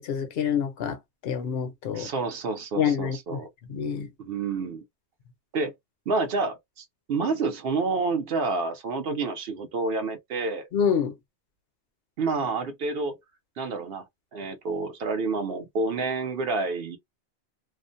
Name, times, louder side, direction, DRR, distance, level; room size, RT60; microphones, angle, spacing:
voice 1, 0.0-2.1 2.7-3.4 3.7-4.1 10.7-11.1, left 7 dB, 65° left, 0.8 m, -27 dB
voice 2, 1.9-3.5 4.2-4.8 5.5-5.7 6.1-10.6 12.2-13.2 13.6-14.0 14.3-17.0, right 3 dB, 65° right, 0.8 m, -29 dB
2.4 x 2.1 x 2.5 m
omnidirectional pair, 1.2 m